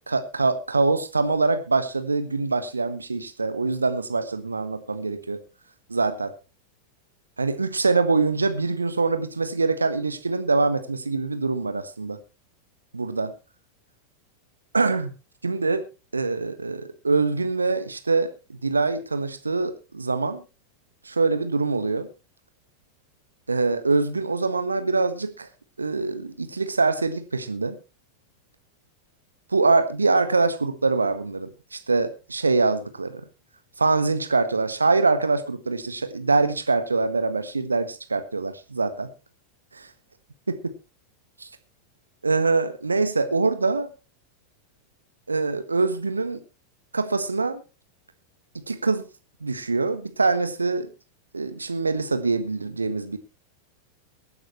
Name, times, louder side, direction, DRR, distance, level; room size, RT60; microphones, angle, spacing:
voice 1, 0.1-5.4 5.9-6.3 7.4-12.2 12.9-13.3 14.7-15.1 15.4-15.8 16.1-20.4 21.0-22.1 23.5-25.5 25.8-27.8 29.5-33.2 33.8-39.1 39.7-39.9 41.4-41.5 42.2-43.9 45.3-46.4 46.9-47.6 48.7-49.0 49.4-50.9 51.3-53.2, right 3 dB, 80° right, 10 dB, 1.5 m, -24 dB
23.0 x 9.0 x 3.1 m, 0.29 s
figure-of-eight pair, 90°, 0 cm